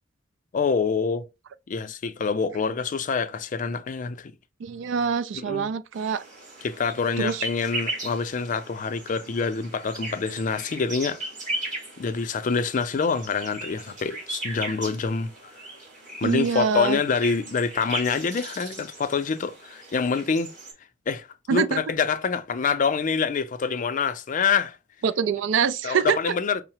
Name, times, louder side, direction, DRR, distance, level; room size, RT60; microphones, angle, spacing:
voice 1, 0.5-1.3 1.7-4.3 5.4-5.7 6.6-11.2 12.0-15.3 16.2-20.5 21.1-24.8 25.8-26.6, left 5 dB, 45° left, 0.4 m, -26 dB
voice 2, 4.6-6.2 7.2-7.4 16.2-17.0 21.5-21.8 25.0-26.3, right 6 dB, 80° right, 0.3 m, -25 dB
sound 1, 5.9-20.7, right 2 dB, 45° right, 1.8 m, -37 dB
5.5 x 2.0 x 2.8 m
head